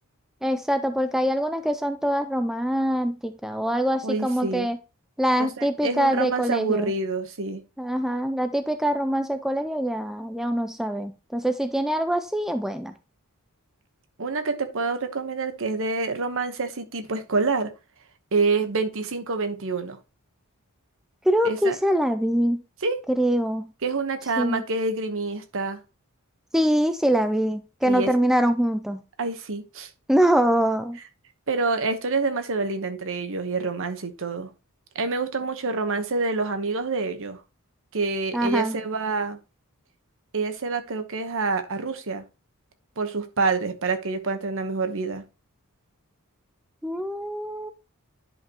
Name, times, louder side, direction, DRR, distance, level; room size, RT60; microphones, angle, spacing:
voice 1, 0.4-4.8 5.2-6.9 7.8-12.9 21.3-22.6 23.1-23.7 24.4-24.6 26.5-29.0 30.1-31.0 38.3-38.8 46.8-47.7, equal, ahead, 0.4 m, -24 dB
voice 2, 4.0-4.7 5.4-7.6 14.2-17.7 18.3-20.0 21.4-21.8 22.8-23.0 23.8-25.8 27.9-28.1 29.2-29.9 31.5-34.5 34.9-37.4 37.9-39.4 40.3-42.2 43.0-45.2, right 3 dB, 60° right, 1.1 m, -27 dB
10.5 x 5.4 x 2.9 m
head